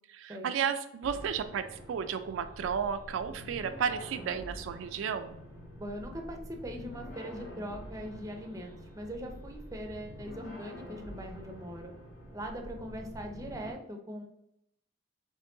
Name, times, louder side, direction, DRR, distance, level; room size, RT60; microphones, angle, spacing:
voice 1, 0.1-5.4, right 7 dB, 75° right, 9 dB, 0.3 m, -33 dB
sound 1, 1.0-13.7, equal, 75° left, 1.8 m, -47 dB
voice 2, 5.8-11.9 12.3-14.2, equal, 15° right, 3 dB, 0.5 m, -41 dB
4.5 x 3.0 x 3.7 m, 0.78 s
head